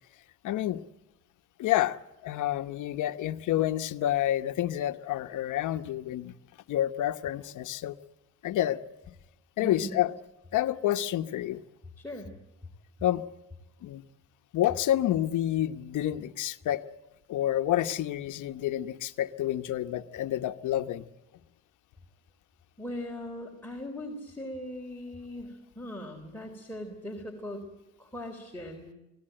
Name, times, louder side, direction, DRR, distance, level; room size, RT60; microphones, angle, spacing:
voice 1, 0.4-0.8 1.6-2.0 2.2-6.3 6.7-8.0 8.4-8.8 9.6-10.1 10.5-11.6 13.0-13.2 13.8-14.0 14.5-16.8 17.3-21.1, left 12 dB, 80° left, 10 dB, 1.1 m, -28 dB
voice 2, 9.6-10.0 12.0-12.3 22.8-27.6 28.0-28.9, left 1 dB, 5° left, 0 dB, 3.7 m, -39 dB
24.0 x 17.0 x 9.0 m, 0.98 s
cardioid pair, 90°, 30 cm